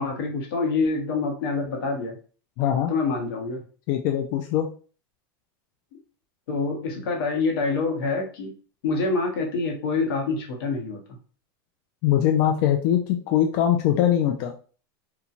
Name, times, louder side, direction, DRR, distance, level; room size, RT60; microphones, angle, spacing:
voice 1, 0.0-2.2 2.9-3.6 5.9-6.0 6.5-8.5 8.8-11.0, left 4 dB, 85° left, 2 dB, 1.0 m, -26 dB
voice 2, 2.6-2.9 3.9-4.7 12.0-14.5, left 10 dB, 50° left, 3 dB, 0.4 m, -22 dB
3.0 x 2.2 x 2.5 m, 0.39 s
supercardioid pair, 140°, 12 cm